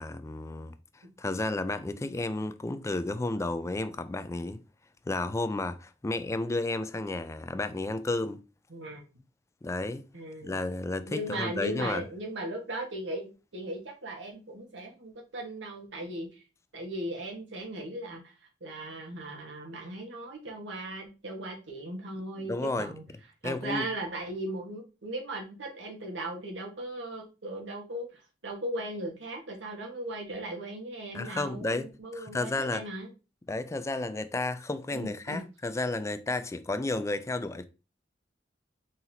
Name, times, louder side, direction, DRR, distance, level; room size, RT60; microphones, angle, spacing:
voice 1, 0.0-4.6 5.1-8.4 9.6-10.0 10.4-12.0 22.4-22.9 23.4-23.9 31.1-32.8 33.5-37.6, left 2 dB, 15° left, 0.3 m, -32 dB
voice 2, 8.7-9.1 10.1-10.6 11.0-16.4 16.7-18.3 18.6-23.0 23.4-33.1 34.9-35.4, right 1 dB, 90° right, 1.4 m, -38 dB
4.2 x 4.0 x 2.7 m
head